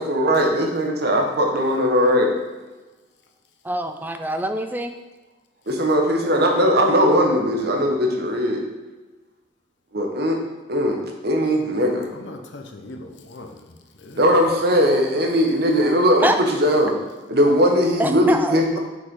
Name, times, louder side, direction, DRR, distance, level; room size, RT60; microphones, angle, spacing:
voice 1, 0.0-2.3 5.7-8.6 9.9-10.4 10.7-11.0 11.2-12.1 14.2-16.9 17.3-18.8, equal, 60° right, 2 dB, 1.1 m, -19 dB
voice 2, 3.6-4.9 16.2-16.4 18.0-18.8, right 1 dB, 10° right, 6 dB, 0.4 m, -24 dB
voice 3, 12.1-14.4, left 2 dB, 80° left, 4 dB, 0.8 m, -40 dB
6.2 x 5.9 x 3.7 m, 1.2 s
head